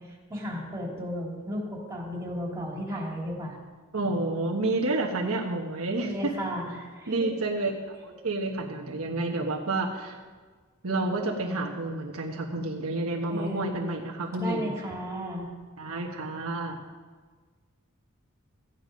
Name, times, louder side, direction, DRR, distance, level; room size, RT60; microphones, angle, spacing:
voice 1, 0.3-3.5 6.0-7.3 13.3-13.7 14.4-15.5, equal, 15° right, -4 dB, 3.0 m, -34 dB
voice 2, 3.9-6.3 7.1-7.7 8.0-10.2 10.8-14.8 15.8-16.8, right 2 dB, 70° right, 0 dB, 1.2 m, -29 dB
15.0 x 9.2 x 5.2 m, 1.5 s
head